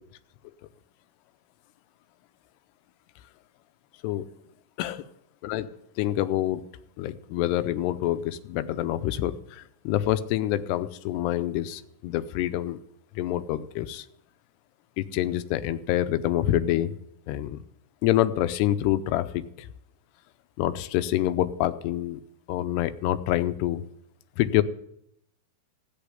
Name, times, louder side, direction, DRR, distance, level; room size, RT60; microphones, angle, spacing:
voice 1, 4.8-5.1 5.4-5.7 6.0-6.6 7.0-12.8 13.2-14.1 15.0-17.0 17.3-17.6 18.0-19.7 20.6-22.2 22.5-23.9 24.4-24.6, left 13 dB, 85° left, 12 dB, 2.8 m, -26 dB
16.5 x 6.8 x 9.8 m, 0.74 s
omnidirectional pair, 4.7 m